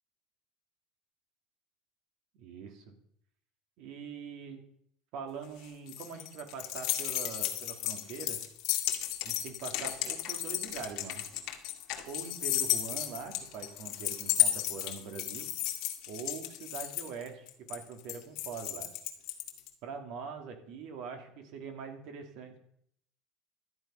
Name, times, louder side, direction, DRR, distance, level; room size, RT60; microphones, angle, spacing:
voice 1, 2.3-2.9 3.8-4.6 5.1-8.4 9.2-11.2 12.1-15.5 16.1-18.9 19.8-22.6, right 6 dB, 60° right, 5 dB, 2.6 m, -43 dB
sound 1, 5.4-19.7, left 13 dB, 60° left, 1.9 m, -33 dB
12.5 x 10.0 x 5.7 m, 0.68 s
cardioid pair, 145°, 0 cm